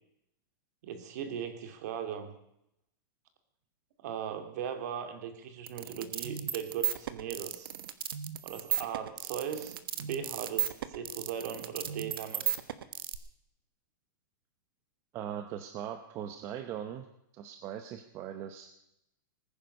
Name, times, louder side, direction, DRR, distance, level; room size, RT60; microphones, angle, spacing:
voice 1, 0.8-2.3 4.0-7.7 8.4-12.6, right 8 dB, 50° right, 8 dB, 2.3 m, -38 dB
sound 1, 5.7-13.2, right 10 dB, 90° right, 1.3 m, -34 dB
voice 2, 15.1-17.1 17.3-18.8, right 10 dB, 25° right, 7 dB, 0.8 m, -40 dB
20.0 x 10.0 x 6.5 m, 0.80 s
supercardioid pair, 170°, 12 cm